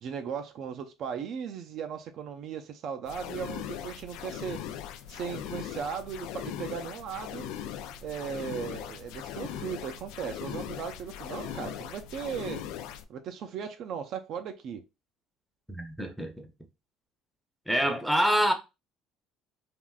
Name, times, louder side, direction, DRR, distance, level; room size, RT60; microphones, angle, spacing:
voice 1, 0.0-4.6 5.1-7.5 8.0-12.7 13.1-14.8 17.8-17.9, right 7 dB, 60° right, 0.4 m, -37 dB
sound 1, 3.0-13.0, left 10 dB, 80° left, 0.3 m, -39 dB
voice 2, 15.7-16.5 17.7-18.5, equal, ahead, 0.7 m, -26 dB
3.4 x 2.5 x 2.3 m
supercardioid pair, 100°, 0 cm